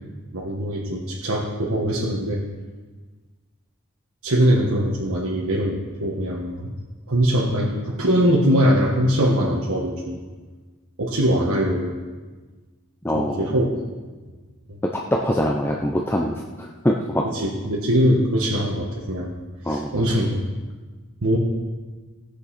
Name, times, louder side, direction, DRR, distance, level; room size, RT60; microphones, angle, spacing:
voice 1, 0.3-2.4 4.2-6.7 7.1-10.2 11.0-11.9 13.1-13.7 17.3-19.3 19.6-20.4 21.2-21.4, equal, 70° right, -4 dB, 1.4 m, -22 dB
voice 2, 13.0-13.5 14.8-17.3 19.7-19.9, equal, 10° left, 0 dB, 0.6 m, -24 dB
18.5 x 6.6 x 4.3 m, 1.4 s
head